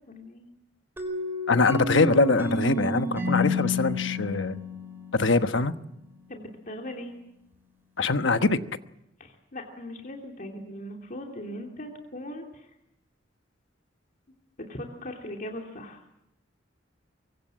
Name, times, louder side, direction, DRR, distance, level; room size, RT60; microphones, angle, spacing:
voice 1, 0.1-0.5 6.3-7.1 9.2-12.7 14.7-16.0, left 1 dB, 45° left, 1 dB, 2.8 m, -39 dB
sound 1, 1.0-5.6, left 3 dB, 10° right, 4.1 m, -30 dB
voice 2, 1.5-4.6 5.1-5.7 8.0-8.6, left 3 dB, 75° left, 10 dB, 1.2 m, -23 dB
24.5 x 23.5 x 7.7 m, 0.85 s
head